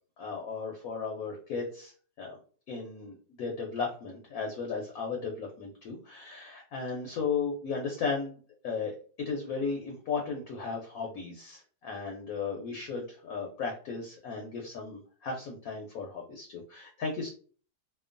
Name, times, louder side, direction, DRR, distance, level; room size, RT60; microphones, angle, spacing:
voice 1, 0.2-2.4 2.7-17.3, left 5 dB, 70° left, 1 dB, 0.9 m, -35 dB
2.9 x 2.2 x 2.4 m, 0.42 s
omnidirectional pair, 1.9 m